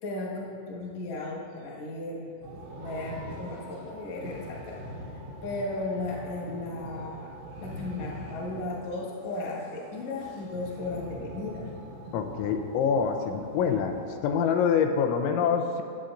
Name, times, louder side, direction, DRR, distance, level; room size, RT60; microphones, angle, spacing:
voice 1, 0.0-2.3 2.8-4.8 5.1-7.3 7.6-11.7, left 2 dB, 55° left, -4 dB, 2.0 m, -35 dB
sound 1, 2.4-14.2, equal, 85° right, 4.2 m, -43 dB
voice 2, 12.1-14.0 14.2-15.8, left 6 dB, 85° left, 5 dB, 3.0 m, -25 dB
18.0 x 8.4 x 2.5 m, 2.4 s
omnidirectional pair, 5.3 m